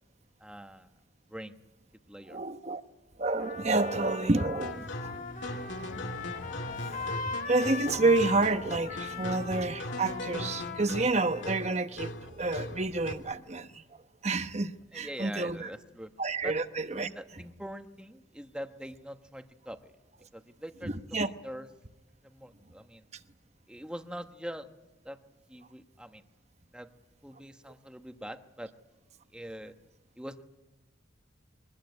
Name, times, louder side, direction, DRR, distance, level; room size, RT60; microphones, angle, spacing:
voice 1, 0.4-0.9 1.3-1.5 2.1-2.4 14.9-16.1 16.4-16.5 16.9-19.9 20.3-20.9 21.2-21.7 22.2-23.0 23.7-24.7 25.0-25.2 25.5-26.2 26.7-26.9 27.2-28.7 29.3-29.7 30.2-30.4, equal, 5° right, 7 dB, 1.1 m, -43 dB
voice 2, 2.3-2.8 3.2-5.1 7.5-13.8 14.2-15.7 16.2-17.1 20.8-21.3, right 3 dB, 35° right, 10 dB, 1.0 m, -29 dB
Trumpet, 3.4-11.9, left 4 dB, 45° left, 1.5 m, -40 dB
sound 1, 4.6-13.3, left 1 dB, 70° left, 2.1 m, -39 dB
23.0 x 20.0 x 9.6 m, 1.1 s
head